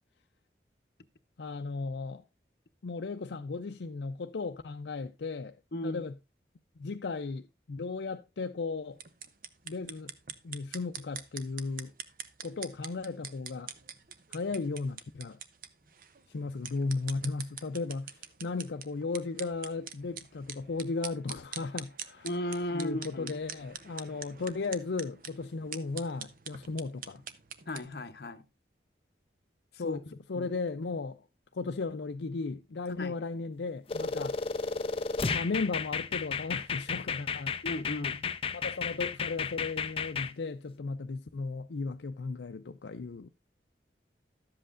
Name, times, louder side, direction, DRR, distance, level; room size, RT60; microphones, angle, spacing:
voice 1, 1.4-2.2 2.8-5.6 5.8-6.1 6.8-9.0 9.7-10.1 10.4-11.9 12.4-13.7 14.3-15.4 16.3-18.2 18.4-22.3 22.7-27.2 29.8-31.3 31.5-34.4 35.3-37.5 38.5-43.3, left 4 dB, 80° left, 0.5 m, -35 dB
voice 2, 5.7-6.0 22.2-23.4 27.7-28.4 29.7-30.5 32.9-33.1 37.6-38.3, left 1 dB, 60° left, 0.8 m, -36 dB
sound 1, 8.9-27.9, right 8 dB, 50° right, 0.7 m, -45 dB
sound 2, 33.9-40.3, left 5 dB, 30° left, 0.5 m, -33 dB
12.5 x 7.8 x 2.5 m
head